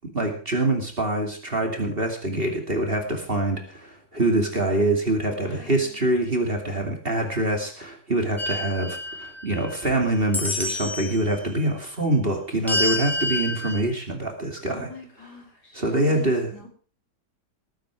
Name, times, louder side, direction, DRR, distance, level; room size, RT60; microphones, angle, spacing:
voice 1, 0.0-14.9 15.7-16.5, right 1 dB, 30° right, 3 dB, 2.7 m, -25 dB
voice 2, 5.3-6.0 14.7-16.7, left 3 dB, 65° left, 2 dB, 4.6 m, -42 dB
sound 1, 8.4-9.9 10.3-11.2 12.7-13.8, left 1 dB, ahead, 2.9 m, -28 dB
19.5 x 9.2 x 4.8 m, 0.41 s
omnidirectional pair, 1.9 m